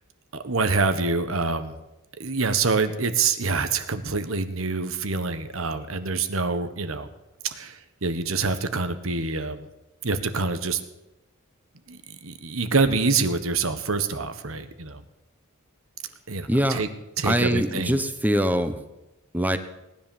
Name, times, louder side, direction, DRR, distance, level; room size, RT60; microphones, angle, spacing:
voice 1, 0.4-1.8 2.2-7.1 7.4-9.7 10.0-10.8 11.9-15.0 16.3-16.9 17.2-18.0, right 4 dB, 80° right, 10 dB, 1.4 m, -26 dB
voice 2, 16.5-16.8 17.2-18.8 19.3-19.6, equal, 10° right, 9 dB, 1.1 m, -23 dB
18.5 x 10.5 x 7.3 m, 0.95 s
head